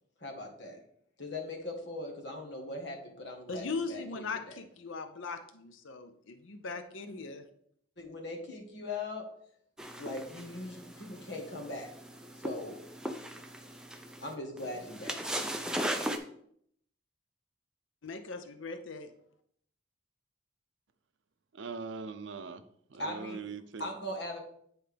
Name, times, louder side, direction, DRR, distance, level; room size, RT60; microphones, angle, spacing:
voice 1, 0.2-0.8 1.2-4.6 8.0-9.3 10.0-11.9 12.4-12.8 14.2-15.5 23.0-23.4 23.8-24.4, left 2 dB, 65° left, 1 dB, 1.5 m, -40 dB
voice 2, 3.5-7.5 18.0-19.1, left 4 dB, 85° left, 8 dB, 0.7 m, -39 dB
sound 1, 9.8-16.2, right 1 dB, 5° right, 0.4 m, -38 dB
voice 3, 21.5-22.6 22.9-23.9, right 4 dB, 75° right, 11 dB, 0.6 m, -41 dB
9.5 x 4.4 x 3.4 m, 0.67 s
head